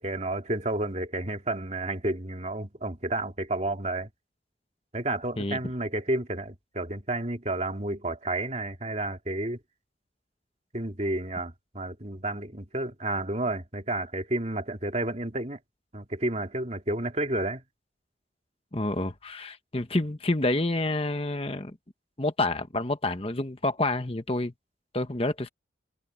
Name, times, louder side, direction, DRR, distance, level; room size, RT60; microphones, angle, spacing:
voice 1, 0.0-4.1 4.9-9.6 10.7-15.6 15.9-17.6, right 2 dB, 35° right, 3.0 m, -31 dB
voice 2, 18.7-21.8 22.2-24.5 24.9-25.5, left 2 dB, 30° left, 1.2 m, -28 dB
head